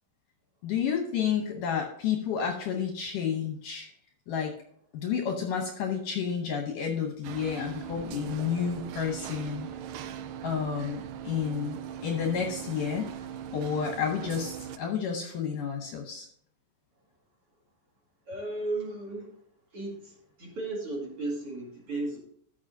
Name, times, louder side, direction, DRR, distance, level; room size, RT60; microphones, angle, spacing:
voice 1, 0.6-3.9 4.3-4.5 4.9-9.7 10.4-13.1 13.5-16.3, left 7 dB, 70° left, 4 dB, 2.1 m, -30 dB
sound 1, 7.2-14.8, right 9 dB, 85° right, 1.9 m, -40 dB
voice 2, 18.3-19.4 19.7-22.2, right 2 dB, 40° right, -3 dB, 2.6 m, -35 dB
13.5 x 6.4 x 2.7 m, 0.67 s
omnidirectional pair, 4.5 m